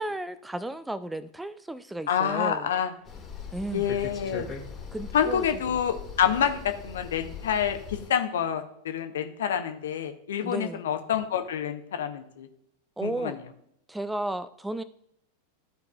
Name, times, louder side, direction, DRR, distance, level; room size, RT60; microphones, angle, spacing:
voice 1, 0.0-2.7 3.5-3.9 4.9-5.4 10.4-10.8 13.0-13.4 13.9-14.8, right 1 dB, 5° right, 14 dB, 0.3 m, -33 dB
voice 2, 2.1-2.9 3.7-4.5 5.1-12.5 13.0-13.4, left 8 dB, 60° left, 8 dB, 0.8 m, -27 dB
sound 1, 3.1-8.1, left 5 dB, 25° left, 1.6 m, -40 dB
13.5 x 4.7 x 2.3 m, 0.74 s
figure-of-eight pair, 90°, 0 cm